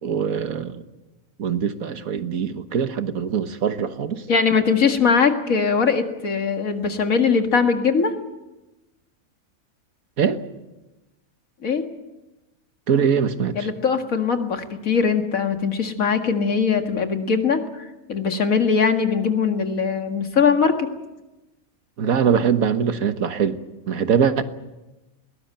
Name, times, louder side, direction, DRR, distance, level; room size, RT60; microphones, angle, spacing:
voice 1, 0.0-0.8 1.4-4.2 10.2-10.4 12.9-13.7 22.0-23.6 23.9-24.4, right 7 dB, 80° right, 10 dB, 1.7 m, -22 dB
voice 2, 4.3-8.1 11.6-11.9 13.5-20.9, left 5 dB, 70° left, 6 dB, 2.3 m, -21 dB
21.5 x 19.0 x 9.0 m, 1.0 s
omnidirectional pair, 1.5 m